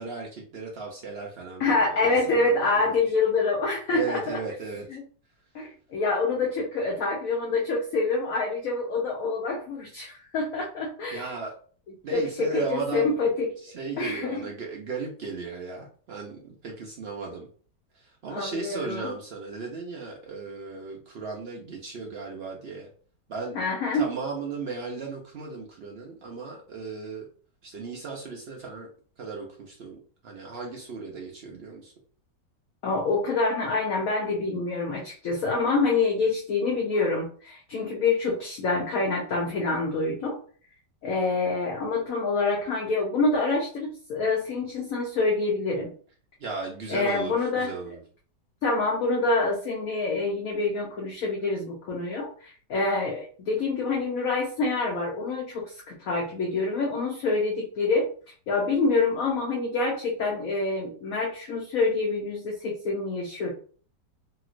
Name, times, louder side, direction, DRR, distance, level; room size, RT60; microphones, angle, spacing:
voice 1, 0.0-3.0 3.9-4.9 11.1-11.5 12.0-13.2 13.6-17.5 17.9-22.9 23.3-23.6 24.0-27.3 27.6-28.9 29.2-30.0 30.2-31.9 46.4-48.0, right 4 dB, 75° right, -1 dB, 0.5 m, -36 dB
voice 2, 1.6-4.4 4.9-5.0 5.5-11.3 12.1-13.5 14.0-14.4 18.3-19.1 23.5-24.1 32.8-40.4 41.0-45.9 46.9-47.7 48.6-58.1 58.5-63.5, left 3 dB, 65° left, -1 dB, 0.9 m, -26 dB
3.0 x 2.9 x 2.4 m, 0.43 s
omnidirectional pair, 1.8 m